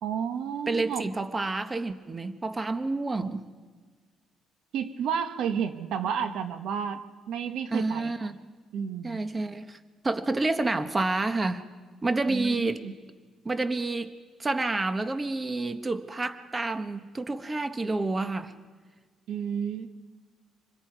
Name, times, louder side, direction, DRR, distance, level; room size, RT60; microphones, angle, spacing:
voice 1, 0.0-1.1 4.7-7.0 7.3-8.1 8.7-9.2 12.3-12.9 19.3-19.9, right 7 dB, 80° right, 9 dB, 1.2 m, -31 dB
voice 2, 0.7-3.5 7.7-8.4 9.0-9.8 10.0-11.7 12.0-12.8 13.4-14.1 14.4-18.6, right 3 dB, 25° right, 10 dB, 1.1 m, -29 dB
27.0 x 21.0 x 4.7 m, 1.5 s
cardioid pair, 90°, 0 cm